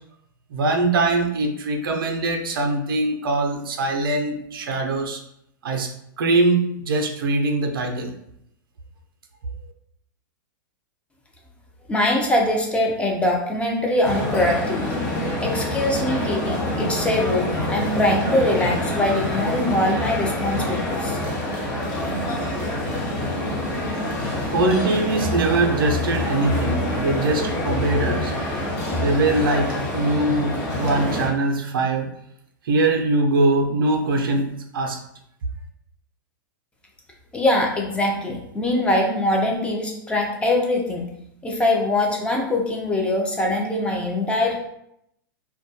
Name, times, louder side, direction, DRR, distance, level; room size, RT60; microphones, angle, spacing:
voice 1, 0.5-5.2 5.6-5.9 6.2-8.1 24.5-28.3 29.0-32.1 32.6-35.0, right 2 dB, 85° right, 3 dB, 0.5 m, -22 dB
voice 2, 11.9-15.1 15.4-21.2 37.3-41.1 41.4-44.6, left 1 dB, 10° left, 0 dB, 0.4 m, -22 dB
sound 1, 14.0-31.3, left 1 dB, 45° left, 0.7 m, -26 dB
2.2 x 2.2 x 2.6 m, 0.76 s
hypercardioid pair, 120°, 11 cm